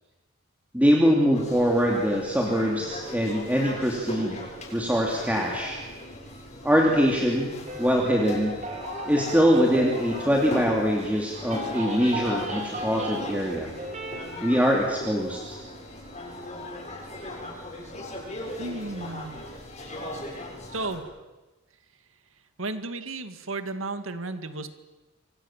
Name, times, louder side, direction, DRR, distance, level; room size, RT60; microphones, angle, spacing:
voice 1, 0.7-4.4 4.7-5.8 6.6-7.5 7.8-8.5 9.1-13.7 14.4-15.6, equal, 5° right, -1 dB, 2.9 m, -23 dB
sound 1, 1.3-21.0, left 1 dB, 35° left, 7.6 m, -38 dB
sound 2, 7.7-10.9 11.3-13.5 13.7-14.2, equal, 35° right, 4.1 m, -37 dB
voice 2, 18.6-19.4 20.7-21.0 22.6-24.7, right 2 dB, 75° right, 9 dB, 2.1 m, -33 dB
27.5 x 25.5 x 7.4 m, 1.2 s
head